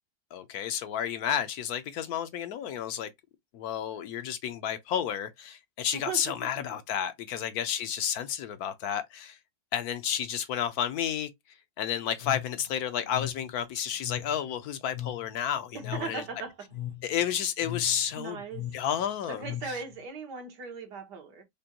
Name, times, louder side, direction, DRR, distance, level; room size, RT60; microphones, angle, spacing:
voice 1, 0.3-3.1 3.5-9.4 9.7-11.3 11.8-16.2 17.0-18.4 18.7-19.8, left 9 dB, 75° left, 1.0 m, -31 dB
voice 2, 5.9-6.3 15.7-16.7 18.2-18.7 19.3-21.4, right 5 dB, 80° right, 1.7 m, -38 dB
sound 1, 12.2-20.0, left 12 dB, 55° left, 0.7 m, -40 dB
5.1 x 2.2 x 2.8 m
omnidirectional pair, 1.8 m